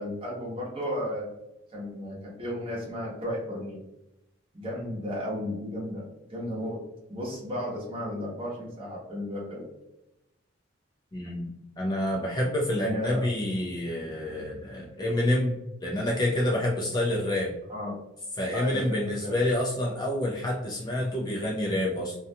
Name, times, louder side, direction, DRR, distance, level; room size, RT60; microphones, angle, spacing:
voice 1, 0.0-1.3 1.7-3.8 4.5-6.0 6.3-6.8 7.1-9.6 12.7-13.3 17.7-17.9 18.5-19.3, equal, 25° right, -5 dB, 0.8 m, -33 dB
voice 2, 11.1-11.5 11.8-15.5 15.8-17.5 18.4-22.2, left 1 dB, 20° left, -3 dB, 0.3 m, -28 dB
2.5 x 2.2 x 2.6 m, 0.89 s
head